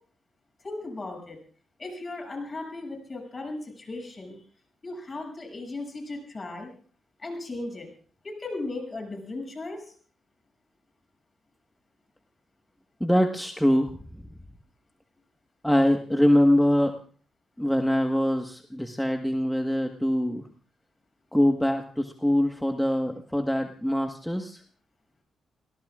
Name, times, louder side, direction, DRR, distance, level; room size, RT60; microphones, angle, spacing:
voice 1, 0.6-1.4 1.8-4.4 4.8-6.7 7.2-7.9 8.2-9.9, left 2 dB, 35° left, 2 dB, 7.3 m, -36 dB
voice 2, 13.0-13.9 15.6-16.9 17.6-20.4 21.3-24.6, equal, 5° left, 4 dB, 1.4 m, -23 dB
30.0 x 17.5 x 2.5 m, 0.42 s
supercardioid pair, 60°, 0 cm